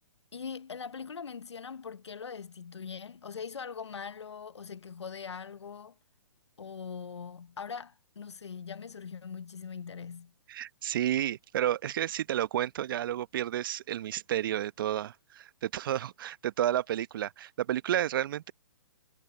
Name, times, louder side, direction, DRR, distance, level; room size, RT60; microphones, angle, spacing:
voice 1, 0.3-5.9 6.6-10.3, left 6 dB, 80° left, 1.1 m, -41 dB
voice 2, 10.5-18.5, right 11 dB, 50° right, 1.0 m, -31 dB
hypercardioid pair, 130°, 14 cm